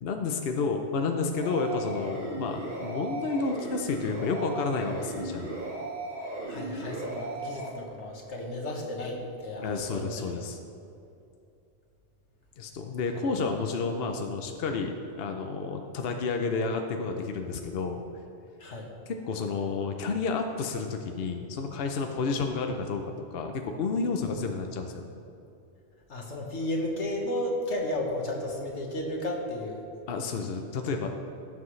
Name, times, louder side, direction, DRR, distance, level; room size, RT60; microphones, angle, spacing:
voice 1, 0.0-5.5 9.6-10.6 12.6-14.9 15.2-18.0 19.1-23.0 23.3-25.1 30.1-31.1, left 4 dB, 60° left, 4 dB, 0.9 m, -30 dB
sound 1, 1.4-7.7, right 2 dB, 45° right, 1.5 m, -36 dB
voice 2, 6.5-10.3 18.6-18.9 26.1-29.8, left 1 dB, 90° left, 0 dB, 1.7 m, -33 dB
17.5 x 7.4 x 3.2 m, 2.7 s
omnidirectional pair, 1.2 m